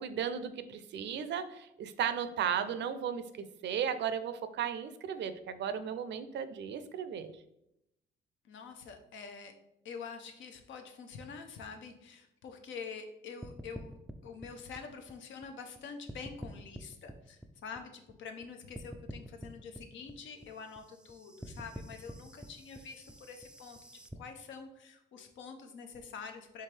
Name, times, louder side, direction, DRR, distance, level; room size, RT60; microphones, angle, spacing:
voice 1, 0.0-3.2 3.6-7.3, right 8 dB, 65° right, 11 dB, 0.5 m, -35 dB
voice 2, 8.4-9.5 9.8-14.0 14.2-23.8 24.2-26.6, left 5 dB, 75° left, 5 dB, 0.7 m, -46 dB
sound 1, 13.4-15.8 16.1-18.4 18.7-24.1, right 1 dB, 5° right, 0.3 m, -47 dB
4.4 x 3.5 x 3.2 m, 0.82 s
cardioid pair, 90°, 20 cm